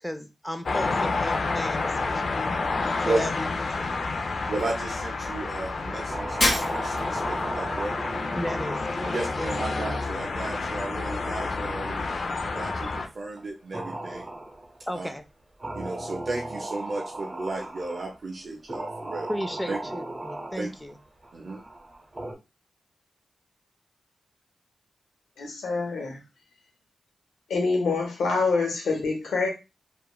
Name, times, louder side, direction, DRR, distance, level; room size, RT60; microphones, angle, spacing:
voice 1, 0.0-2.7 3.0-4.2 8.3-9.7 14.9-15.2 19.3-21.0, equal, 10° left, 0.5 m, -35 dB
sound 1, 0.7-13.1, left 3 dB, 65° left, 0.4 m, -29 dB
voice 2, 4.5-8.0 9.1-12.1 12.5-14.3 14.9-15.1 15.7-19.3 19.7-19.8 20.6-20.7 21.3-21.6, right 2 dB, 60° right, 0.5 m, -33 dB
sound 2, 5.9-13.0 13.4-13.5 13.7-14.9 15.6-18.1 18.7-22.3, right 1 dB, 30° right, 0.8 m, -37 dB
Shatter, 6.4-7.2, left 1 dB, 45° left, 1.3 m, -25 dB
voice 3, 25.4-26.2 27.5-29.5, left 4 dB, 85° left, 0.8 m, -26 dB
2.8 x 2.3 x 2.3 m
supercardioid pair, 40°, 0 cm